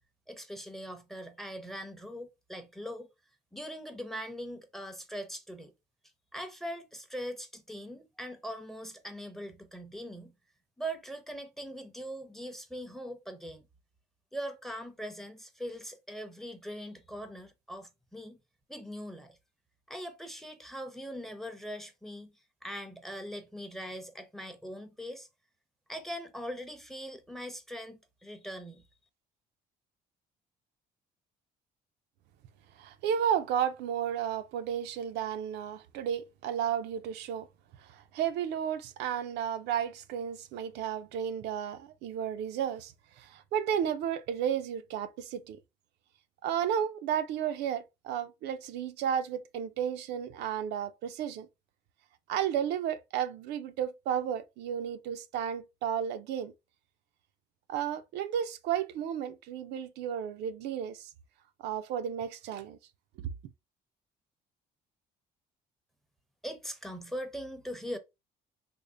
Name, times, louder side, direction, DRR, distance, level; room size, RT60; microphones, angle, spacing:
voice 1, 0.3-3.1 3.5-5.7 6.3-10.3 10.8-13.7 14.3-18.4 18.7-19.4 19.9-22.3 22.6-25.3 25.9-28.8 66.4-68.0, equal, ahead, 0.6 m, -41 dB
voice 2, 32.8-37.5 37.8-45.6 46.4-51.5 52.3-56.5 57.7-61.1 61.6-62.8 63.2-63.3, right 9 dB, 80° right, 0.5 m, -33 dB
3.5 x 2.0 x 3.7 m
cardioid pair, 110°, 17 cm